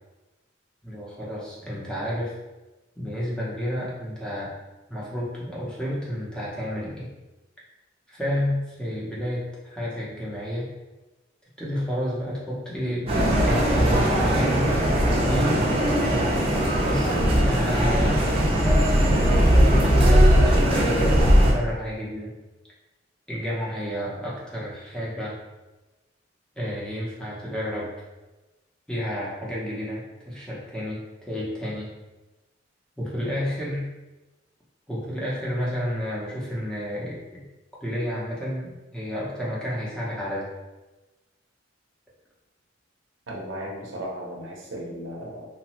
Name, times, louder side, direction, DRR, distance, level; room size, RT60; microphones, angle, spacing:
voice 1, 0.8-2.4 3.0-4.5 4.9-7.1 8.1-10.7 11.6-13.1 13.5-14.7 15.1-15.6 16.1-18.4 19.5-22.3 23.3-25.4 26.6-27.9 28.9-31.0 31.3-31.9 33.0-33.9 34.9-37.4 37.8-40.5, equal, 5° left, -7 dB, 0.7 m, -30 dB
sound 1, 13.1-21.5, equal, 30° right, 0.6 m, -19 dB
voice 2, 43.3-45.5, equal, 85° right, -1 dB, 0.7 m, -35 dB
3.0 x 2.2 x 2.9 m, 1.1 s
head